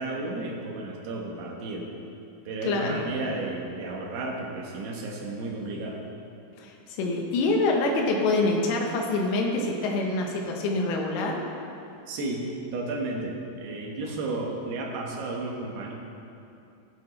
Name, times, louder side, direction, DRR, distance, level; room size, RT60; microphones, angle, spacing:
voice 1, 0.0-1.8 2.5-6.0 12.1-12.5 12.7-15.9, right 2 dB, 70° right, -1 dB, 3.3 m, -33 dB
voice 2, 2.7-3.1 6.6-11.4, left 2 dB, 80° left, 0 dB, 3.2 m, -26 dB
19.0 x 7.4 x 3.2 m, 2.7 s
omnidirectional pair, 5.1 m